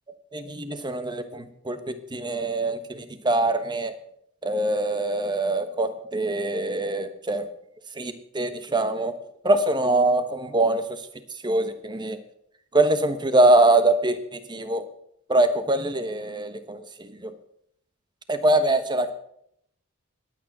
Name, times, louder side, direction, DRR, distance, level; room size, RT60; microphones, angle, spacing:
voice 1, 0.3-3.9 4.4-7.5 8.0-9.1 9.4-11.0 11.4-12.2 12.7-14.8 15.3-17.3 18.3-19.1, right 2 dB, 20° right, 10 dB, 1.1 m, -23 dB
20.0 x 9.0 x 6.1 m, 0.73 s
head